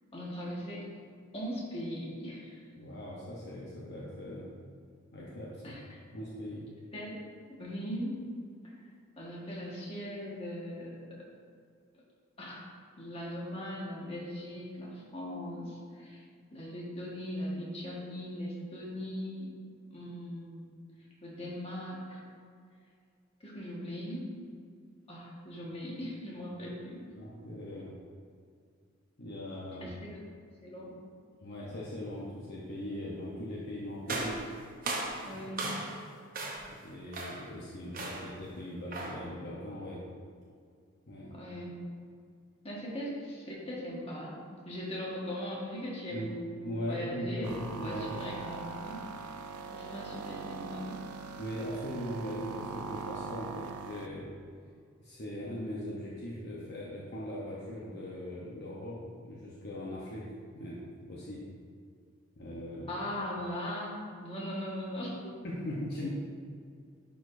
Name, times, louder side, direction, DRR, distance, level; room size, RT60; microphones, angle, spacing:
voice 1, 0.1-0.8 1.3-2.6 5.6-6.0 6.9-7.2 7.5-8.1 8.7-8.8 9.2-11.0 12.4-12.6 13.0-16.2 16.5-19.5 19.9-20.7 21.2-22.3 23.4-24.2 25.1-27.0 29.8-30.0 30.6-30.9 35.2-35.7 41.3-41.8 42.6-44.4 44.6-49.0 49.7-51.0 62.9-63.9 64.2-65.4, equal, 25° left, -5 dB, 1.4 m, -39 dB
voice 2, 2.8-4.5 5.1-5.8 6.1-6.6 27.2-27.9 29.2-29.9 31.4-34.3 35.2-35.4 36.7-40.0 41.1-41.3 46.1-46.3 46.6-48.1 51.4-54.3 55.0-60.2 60.5-60.8 61.1-61.4 62.4-62.9 65.4-66.1, equal, 50° left, -5 dB, 0.8 m, -40 dB
sound 1, 34.1-36.0 36.3-36.8 37.1-37.5 37.9-38.4 38.9-39.3, right 2 dB, 40° right, 0.8 m, -37 dB
sound 2, 47.4-54.1, right 5 dB, 90° right, 0.4 m, -41 dB
10.5 x 4.7 x 2.6 m, 2.2 s
head